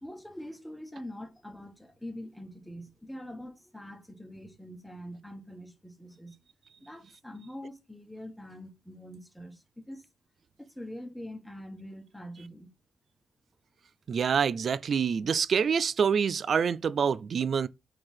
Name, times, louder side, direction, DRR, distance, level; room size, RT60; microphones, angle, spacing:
voice 1, 0.0-6.4 6.8-10.0 10.6-12.7, left 1 dB, 5° left, 1.3 m, -44 dB
voice 2, 14.1-17.7, right 6 dB, 50° right, 0.3 m, -26 dB
4.8 x 4.6 x 5.6 m
cardioid pair, 120°, 0 cm